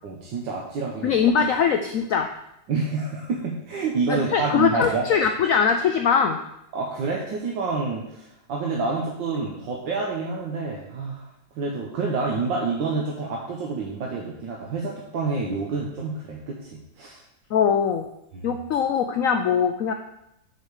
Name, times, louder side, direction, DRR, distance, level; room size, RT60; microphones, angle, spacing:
voice 1, 0.0-1.2 2.7-5.1 6.7-11.2 11.6-16.7 17.0-17.2 18.3-18.5, right 4 dB, 80° right, -2 dB, 1.7 m, -28 dB
voice 2, 1.0-2.3 4.1-6.4 17.5-18.0 18.4-19.9, left 7 dB, 80° left, 6 dB, 0.7 m, -21 dB
6.2 x 5.3 x 6.4 m, 0.81 s
omnidirectional pair, 2.0 m